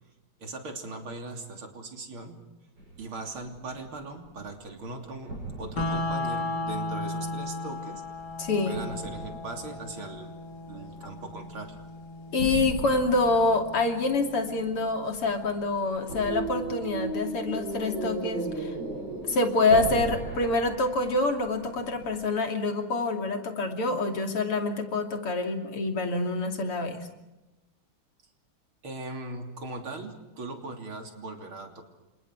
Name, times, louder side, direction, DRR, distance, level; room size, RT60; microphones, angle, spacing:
voice 1, 0.4-2.4 3.0-8.0 8.7-10.3 10.7-11.8 28.8-31.8, right 2 dB, 70° right, 3 dB, 4.0 m, -39 dB
sound 1, 2.8-3.2 3.6-4.7 5.2-7.5 8.1-10.2 10.5-11.3 11.6-12.0 12.4-22.2, right 2 dB, 55° right, 6.6 m, -37 dB
sound 2, 5.8-15.8, left 2 dB, 50° left, 2.9 m, -36 dB
voice 2, 8.4-8.8 12.3-18.8 19.2-27.1, left 3 dB, 85° left, 4 dB, 3.7 m, -26 dB
29.5 x 27.0 x 4.8 m, 1.0 s
omnidirectional pair, 2.4 m